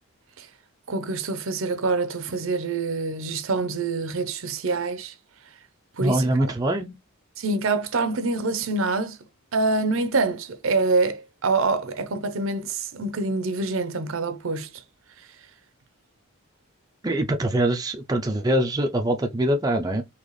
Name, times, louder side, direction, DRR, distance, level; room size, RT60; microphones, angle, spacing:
voice 1, 0.9-5.1 6.0-6.2 7.4-9.2 9.5-14.7, right 3 dB, 65° right, 0.7 m, -25 dB
voice 2, 6.0-7.0 17.0-20.0, right 1 dB, 15° right, 0.4 m, -23 dB
4.0 x 2.9 x 3.2 m
head